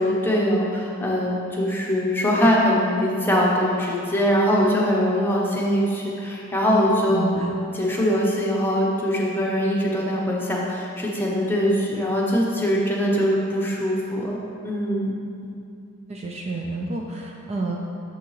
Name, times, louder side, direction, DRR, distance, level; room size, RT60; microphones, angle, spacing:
voice 1, 0.0-7.4 7.7-14.4 14.6-15.1, equal, 10° left, -4 dB, 0.9 m, -22 dB
voice 2, 7.1-7.5 16.1-17.8, right 3 dB, 30° right, 0 dB, 0.4 m, -29 dB
7.1 x 5.8 x 3.2 m, 2.5 s
head